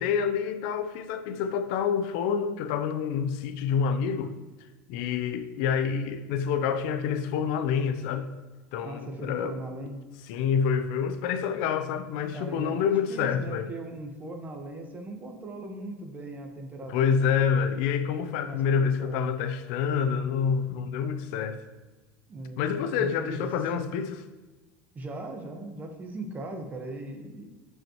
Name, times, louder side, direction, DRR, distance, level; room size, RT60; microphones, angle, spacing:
voice 1, 0.0-4.4 4.9-8.3 8.7-9.6 10.3-13.7 16.9-21.6 22.6-24.2, left 7 dB, 70° left, 10 dB, 0.6 m, -27 dB
voice 2, 8.8-10.0 12.3-17.4 18.4-19.2 22.3-22.7 22.9-23.9 24.9-27.5, right 2 dB, 25° right, 4 dB, 1.3 m, -39 dB
11.5 x 5.4 x 3.1 m, 1.2 s
supercardioid pair, 115°, 7 cm